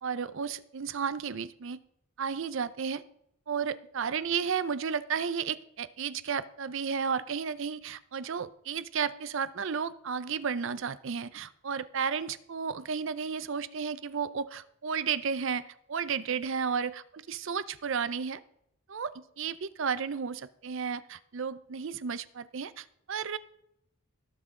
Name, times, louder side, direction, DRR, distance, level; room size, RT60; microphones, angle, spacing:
voice 1, 0.0-1.8 2.2-3.0 3.5-18.4 18.9-23.4, right 6 dB, 55° right, 15 dB, 0.5 m, -33 dB
17.5 x 6.0 x 3.7 m, 0.76 s
head